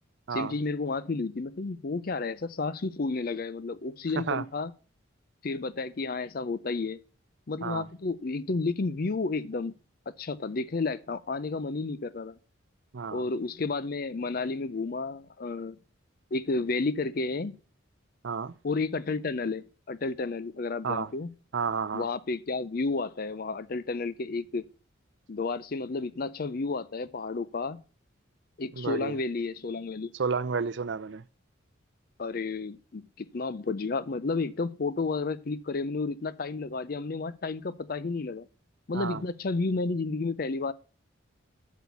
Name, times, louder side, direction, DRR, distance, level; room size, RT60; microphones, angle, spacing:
voice 1, 0.3-4.7 5.4-7.0 7.5-9.7 10.2-12.4 13.1-15.8 16.3-17.6 18.6-21.3 21.9-24.7 25.3-27.8 28.6-30.1 32.2-38.5 38.9-40.7, left 3 dB, 45° left, 0.5 m, -31 dB
voice 2, 21.5-22.1 28.8-29.2 30.1-31.2 38.9-39.2, right 5 dB, 60° right, 0.5 m, -31 dB
8.3 x 6.3 x 6.9 m
head